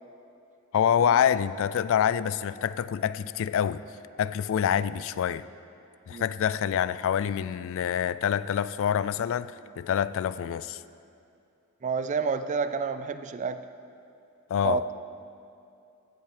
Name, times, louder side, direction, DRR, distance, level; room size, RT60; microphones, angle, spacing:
voice 1, 0.7-3.8 4.2-5.4 6.1-10.8 14.5-14.8, left 8 dB, 65° left, 17 dB, 0.3 m, -26 dB
voice 2, 11.8-13.6 14.6-14.9, right 5 dB, 35° right, 11 dB, 0.4 m, -29 dB
14.5 x 7.4 x 4.9 m, 2.7 s
head